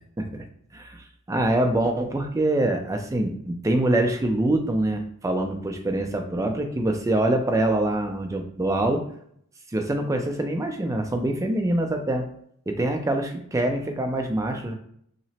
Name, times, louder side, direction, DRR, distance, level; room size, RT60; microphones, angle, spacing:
voice 1, 0.7-9.0 9.7-12.3 12.7-14.7, right 1 dB, 15° right, 5 dB, 0.3 m, -25 dB
2.8 x 2.0 x 4.0 m, 0.66 s
head